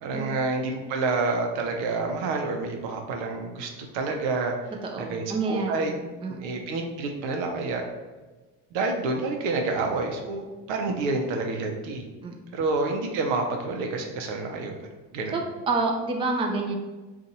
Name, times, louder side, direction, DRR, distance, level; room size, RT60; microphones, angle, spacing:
voice 1, 0.0-4.5 5.0-5.9 6.3-7.8 8.7-12.0 12.5-14.7 15.1-15.4, right 3 dB, 70° right, 3 dB, 0.7 m, -28 dB
voice 2, 4.8-6.5 10.9-11.0 12.2-12.3 15.3-16.8, right 3 dB, 10° right, 2 dB, 0.4 m, -29 dB
2.6 x 2.5 x 4.1 m, 1.2 s
hypercardioid pair, 60°, 48 cm